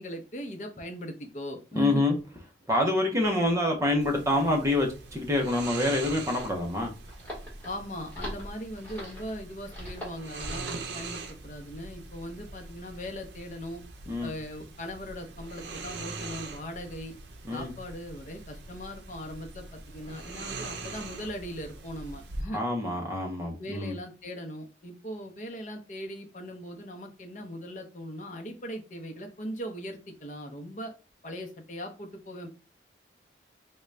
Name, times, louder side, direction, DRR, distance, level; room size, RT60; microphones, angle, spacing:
voice 1, 0.0-2.0 4.1-4.3 7.6-13.8 14.2-17.1 17.5-22.6 23.6-30.9 31.2-32.5, equal, 45° left, 4 dB, 0.6 m, -39 dB
voice 2, 1.8-2.1 2.7-6.9 14.1-14.3 17.5-17.7 22.5-24.0, left 1 dB, 15° right, 1 dB, 0.6 m, -26 dB
sound 1, 4.0-22.4, right 3 dB, 70° right, 0.6 m, -42 dB
sound 2, 5.8-10.9, equal, 10° left, 1.2 m, -42 dB
3.7 x 2.2 x 3.2 m, 0.33 s
head